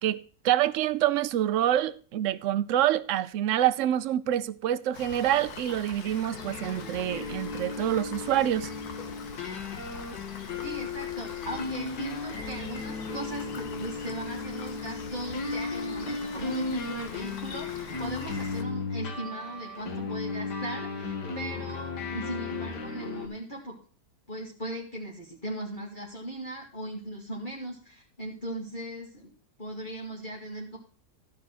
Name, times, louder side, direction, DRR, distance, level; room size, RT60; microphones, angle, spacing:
voice 1, 0.0-8.7, right 12 dB, 65° right, 0.8 m, -26 dB
Rain, 4.9-18.6, left 5 dB, 65° left, 1.7 m, -43 dB
sound 1, 6.3-23.3, left 4 dB, 85° left, 2.3 m, -35 dB
voice 2, 10.6-23.8 24.3-29.3 29.6-30.8, right 1 dB, 30° left, 2.4 m, -38 dB
13.5 x 5.3 x 6.1 m
omnidirectional pair, 1.8 m